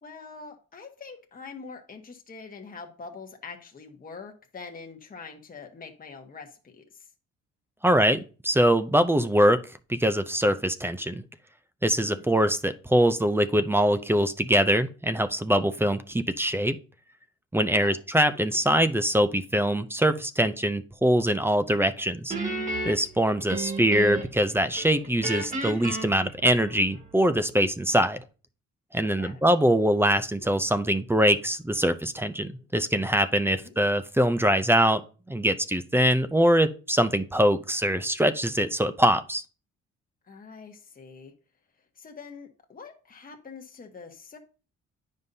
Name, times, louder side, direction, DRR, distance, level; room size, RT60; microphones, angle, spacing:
voice 1, 0.0-7.1 12.1-12.4 17.8-18.0 29.0-29.4 33.5-33.7 40.2-41.3 42.0-44.4, left 4 dB, 30° left, 3 dB, 1.2 m, -44 dB
voice 2, 7.8-9.6 9.9-11.2 11.8-16.8 17.5-22.3 22.9-28.2 28.9-35.0 35.3-39.4, equal, 10° right, 12 dB, 0.5 m, -23 dB
Guitar, 22.3-24.4 24.8-27.1, right 2 dB, 25° right, 1.9 m, -33 dB
9.5 x 5.4 x 2.7 m, 0.37 s
cardioid pair, 90°, 30 cm